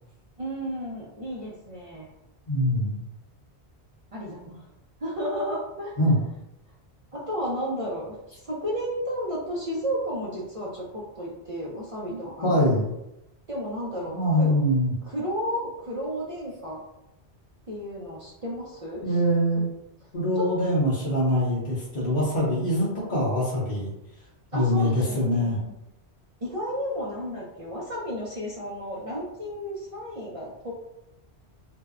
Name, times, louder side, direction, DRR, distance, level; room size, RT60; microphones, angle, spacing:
voice 1, 0.4-2.1 4.1-4.6 5.0-6.0 7.1-12.6 13.5-14.5 15.0-16.8 17.7-19.2 20.4-20.5 24.5-25.7 26.4-30.7, equal, 50° right, -5 dB, 0.4 m, -33 dB
voice 2, 2.5-3.0 6.0-6.2 12.4-12.9 14.1-14.9 19.0-19.7 20.1-23.9 24.5-25.6, equal, 45° left, -7 dB, 0.8 m, -23 dB
2.6 x 2.0 x 2.3 m, 0.87 s
omnidirectional pair, 1.1 m